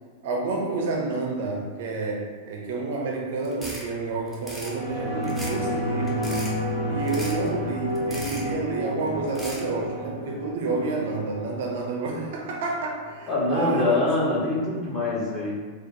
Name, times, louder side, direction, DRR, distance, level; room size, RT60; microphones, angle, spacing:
voice 1, 0.2-6.3 6.8-14.0, right 3 dB, 55° right, -1 dB, 0.5 m, -29 dB
sound 1, 3.4-3.9 4.3-4.7 5.2-5.7 6.0-6.5 7.1-7.5 8.0-8.5 9.3-9.7, equal, 5° left, 0.7 m, -37 dB
sound 2, 4.6-13.6 14.0-14.1, equal, 55° left, 1.1 m, -31 dB
voice 2, 13.3-15.7, left 2 dB, 20° left, -6 dB, 1.0 m, -24 dB
4.1 x 2.0 x 2.9 m, 1.5 s
figure-of-eight pair, 90°, 0 cm